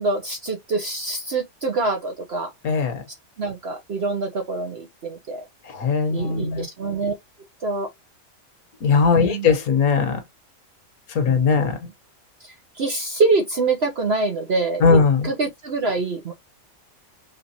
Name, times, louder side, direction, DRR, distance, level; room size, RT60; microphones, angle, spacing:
voice 1, 0.0-2.5 3.4-5.5 6.1-7.1 7.6-7.9 9.2-9.5 11.3-11.5 12.4-16.3, right 3 dB, 50° right, 1.0 m, -25 dB
voice 2, 5.7-6.7 8.8-10.2 11.1-11.8 14.8-15.3, left 5 dB, 90° left, 1.6 m, -19 dB
5.0 x 3.4 x 2.8 m
omnidirectional pair, 1.5 m